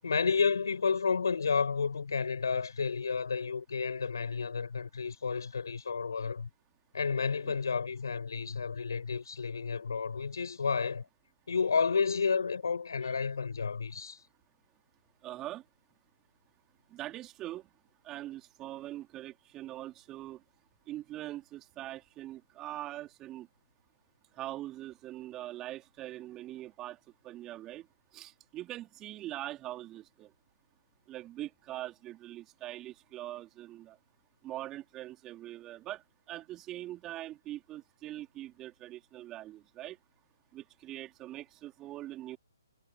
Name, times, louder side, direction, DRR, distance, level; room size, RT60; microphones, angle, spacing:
voice 1, 0.0-6.5 6.9-11.0 11.5-14.2, left 5 dB, 75° left, 7.4 m, -31 dB
voice 2, 15.2-15.6 16.9-17.7 18.0-20.4 20.9-23.5 24.3-27.0 27.2-27.9 28.1-30.3 31.1-34.0 34.4-40.0 40.5-42.4, right 14 dB, 20° right, 3.7 m, -42 dB
hypercardioid pair, 140°, 2 cm